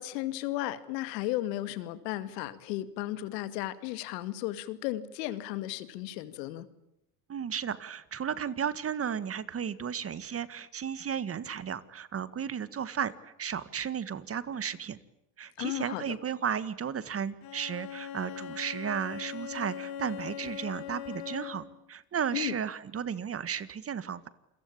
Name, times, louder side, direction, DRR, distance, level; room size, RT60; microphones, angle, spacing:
voice 1, 0.0-6.7 15.6-16.2 22.3-22.5, left 15 dB, 80° left, 13 dB, 2.4 m, -34 dB
voice 2, 7.3-15.0 15.4-24.3, right 8 dB, 30° right, 15 dB, 1.7 m, -34 dB
Bowed string instrument, 17.4-21.8, left 9 dB, 45° left, 3.9 m, -40 dB
28.5 x 22.5 x 8.7 m, 0.84 s
supercardioid pair, 115°, 48 cm